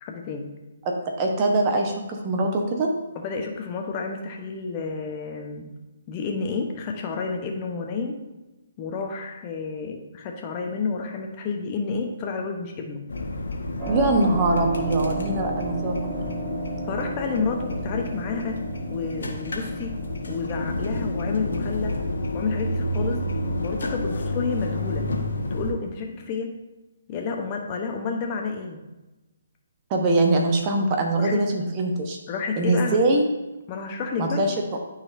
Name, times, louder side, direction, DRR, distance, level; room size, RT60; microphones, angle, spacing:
voice 1, 0.0-0.5 3.1-5.7 6.1-8.2 8.8-13.1 16.9-20.0 20.3-22.0 22.3-23.3 23.6-25.1 25.5-26.5 27.1-28.8 31.2-31.4 32.3-33.0 33.7-34.5, left 5 dB, 30° left, 3 dB, 0.9 m, -30 dB
voice 2, 0.8-2.9 13.9-16.2 29.9-32.2 32.6-33.3 34.2-34.8, right 2 dB, 30° right, 2 dB, 1.0 m, -23 dB
sound 1, 13.1-25.7, left 1 dB, 70° left, 1.3 m, -30 dB
Keyboard (musical), 13.8-26.3, right 2 dB, 15° right, 1.6 m, -36 dB
12.0 x 4.1 x 2.6 m, 1.0 s
figure-of-eight pair, 140°, 0 cm